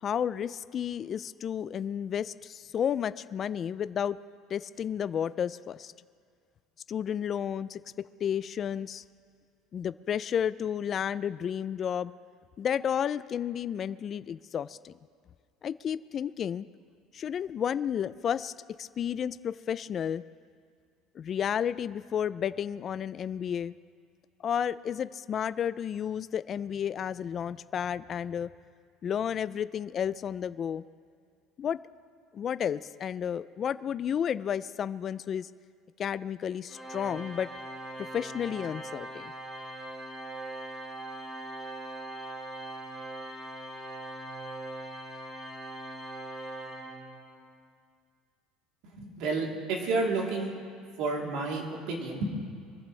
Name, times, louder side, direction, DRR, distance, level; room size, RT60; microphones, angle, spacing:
voice 1, 0.0-4.2 4.5-5.9 6.9-9.0 9.7-12.1 12.6-14.9 15.6-16.7 17.1-18.5 18.8-20.2 21.2-23.7 24.4-28.5 29.0-30.8 31.6-31.8 32.3-35.5 36.0-37.5 38.0-39.3, left 8 dB, 35° left, 15 dB, 0.3 m, -32 dB
Organ, 36.7-47.5, right 1 dB, 15° right, 4.0 m, -41 dB
voice 2, 48.8-50.6 51.0-52.3, right 3 dB, 70° right, -1 dB, 3.3 m, -31 dB
24.5 x 14.5 x 3.3 m, 2.2 s
cardioid pair, 150°, 0 cm